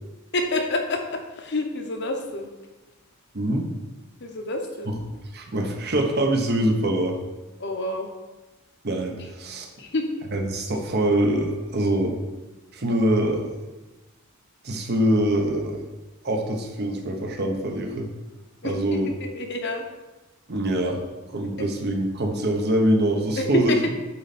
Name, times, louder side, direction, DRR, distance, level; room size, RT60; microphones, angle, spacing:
voice 1, 0.3-2.5 4.2-4.9 7.6-8.1 9.8-10.1 18.6-19.9 23.4-23.9, left 1 dB, 55° left, 3 dB, 0.9 m, -27 dB
voice 2, 3.3-3.7 4.9-5.0 5.3-7.2 8.8-9.7 10.3-12.2 12.7-13.5 14.6-15.8 16.2-18.1 18.6-19.1 20.5-21.0 21.3-23.9, right 1 dB, 50° right, 2 dB, 0.9 m, -24 dB
8.6 x 4.0 x 4.2 m, 1.1 s
head